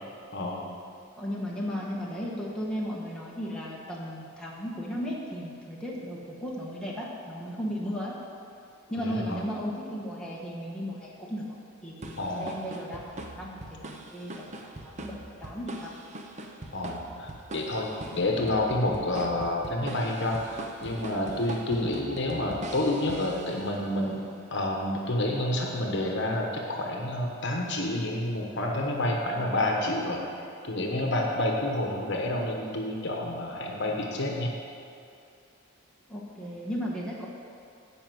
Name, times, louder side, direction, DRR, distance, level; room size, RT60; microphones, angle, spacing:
voice 1, 0.3-0.6 9.0-9.4 12.2-12.6 16.7-24.2 24.5-30.2 30.6-34.5, left 1 dB, 55° left, 0 dB, 1.2 m, -29 dB
voice 2, 1.2-8.2 8.9-11.6 11.8-14.5 14.8-15.9 36.1-37.3, equal, 5° left, -5 dB, 1.4 m, -35 dB
sound 1, 12.0-24.0, right 2 dB, 35° right, 0.7 m, -42 dB
10.0 x 5.3 x 7.7 m, 2.6 s
head